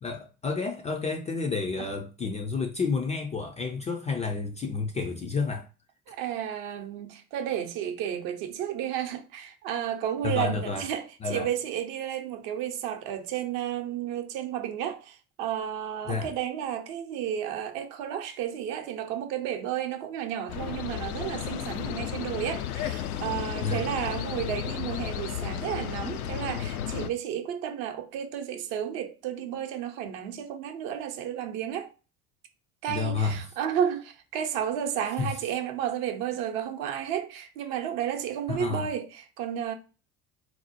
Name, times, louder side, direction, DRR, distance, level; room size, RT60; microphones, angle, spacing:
voice 1, 0.0-5.7 10.2-10.9 11.2-11.5 16.1-16.3 23.6-23.9 32.9-33.4 35.2-35.4 38.5-38.9, left 4 dB, 15° left, 0.4 m, -30 dB
voice 2, 6.1-31.9 32.8-39.7, right 10 dB, 50° right, 0.7 m, -32 dB
sound 1, 20.5-27.1, left 10 dB, 75° left, 0.5 m, -33 dB
4.1 x 2.1 x 2.8 m
figure-of-eight pair, 65°, 45 cm